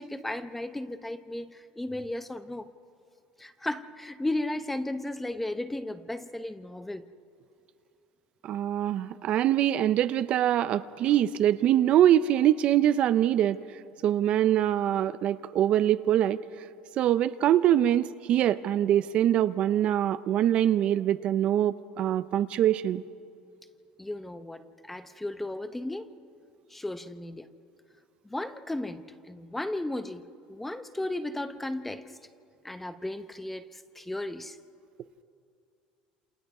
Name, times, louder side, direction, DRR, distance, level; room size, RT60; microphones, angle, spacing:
voice 1, 0.0-2.7 3.4-7.1 24.0-26.1 26.7-27.5 28.2-30.2 30.5-32.2 32.6-34.6, left 1 dB, 5° left, 0.7 m, -35 dB
voice 2, 8.4-16.4 17.0-23.0, right 11 dB, 45° right, 0.5 m, -24 dB
28.0 x 28.0 x 4.8 m
cardioid pair, 150°, 3 cm